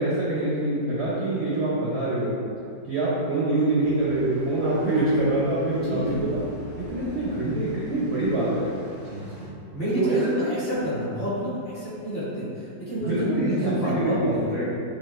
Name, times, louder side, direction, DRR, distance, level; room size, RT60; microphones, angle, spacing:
voice 1, 0.0-2.4 2.8-6.4 6.8-8.7 10.0-10.4 13.1-14.7, right 2 dB, 65° right, -7 dB, 0.7 m, -25 dB
sound 1, 3.8-9.5, left 2 dB, 65° left, 2.2 m, -43 dB
voice 2, 5.8-6.2 9.0-9.5 9.7-14.5, equal, 40° left, -10 dB, 1.2 m, -29 dB
5.8 x 2.5 x 2.4 m, 2.5 s
omnidirectional pair, 1.9 m